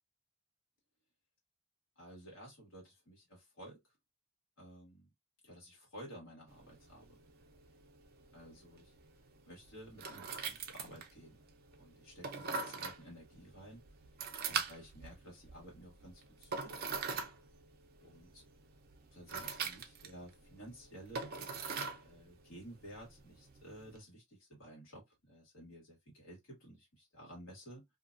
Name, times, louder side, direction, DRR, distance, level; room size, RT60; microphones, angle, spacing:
voice 1, 2.0-3.8 4.6-5.1 5.4-7.2 8.3-8.9 9.5-11.4 11.8-13.8 14.4-17.1 18.0-18.4 19.1-21.3 22.0-27.8, equal, 85° left, 1.4 m, -53 dB
sound 1, 6.5-24.0, right 5 dB, 50° right, 0.4 m, -44 dB
2.6 x 2.2 x 2.4 m
head